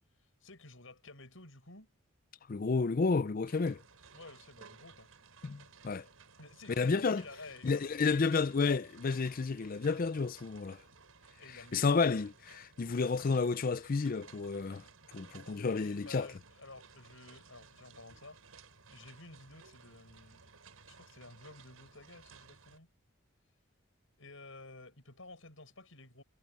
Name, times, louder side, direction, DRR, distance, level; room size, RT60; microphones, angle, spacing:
voice 1, 0.2-1.9 4.1-5.1 6.4-8.5 11.4-12.0 15.7-18.4 18.9-20.5 20.9-22.9 24.2-26.2, left 2 dB, 65° left, 7.3 m, -53 dB
voice 2, 2.5-3.8 5.4-6.1 6.8-7.2 7.6-10.8 11.7-14.8 15.1-16.3, left 4 dB, 40° left, 0.4 m, -31 dB
sound 1, 3.4-22.8, right 5 dB, 80° right, 5.5 m, -58 dB
head